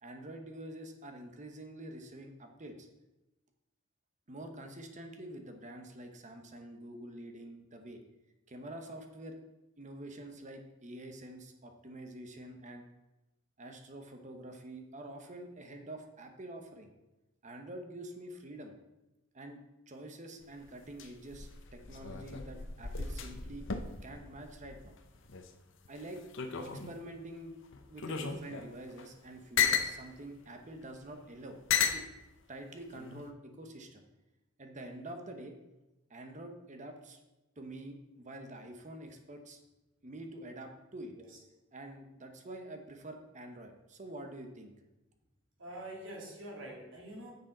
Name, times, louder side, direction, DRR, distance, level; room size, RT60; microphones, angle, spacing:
voice 1, 0.0-2.9 4.3-8.0 8.5-9.4 9.8-12.8 13.6-16.9 17.4-18.7 19.3-19.6 19.9-23.6 24.0-24.9 25.9-26.2 26.6-27.5 27.9-31.6 31.9-32.0 32.5-34.0 34.6-35.6 36.1-37.2 37.6-39.6 40.0-41.1 41.7-44.7, right 1 dB, 35° right, 5 dB, 1.0 m, -47 dB
sound 1, 20.4-25.5 25.8-27.1 27.7-29.9 30.8-30.9 31.7-32.1 32.9-33.3, left 6 dB, 65° left, 0.8 m, -35 dB
voice 2, 45.6-47.3, right 1 dB, 70° right, -2 dB, 2.8 m, -45 dB
9.9 x 7.0 x 3.9 m, 1.0 s
head